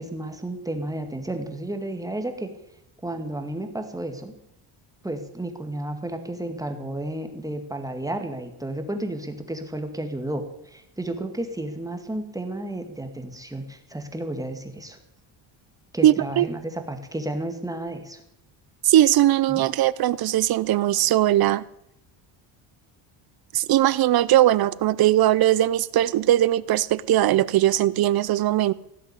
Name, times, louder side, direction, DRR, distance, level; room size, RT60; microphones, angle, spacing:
voice 1, 0.0-2.5 3.0-4.3 5.0-15.0 15.9-18.2 19.5-19.6, right 1 dB, 5° right, 6 dB, 2.0 m, -32 dB
voice 2, 16.0-16.5 18.8-21.6 23.5-28.7, right 13 dB, 50° right, 19 dB, 0.7 m, -20 dB
17.0 x 6.5 x 9.9 m, 0.78 s
cardioid pair, 120°, 48 cm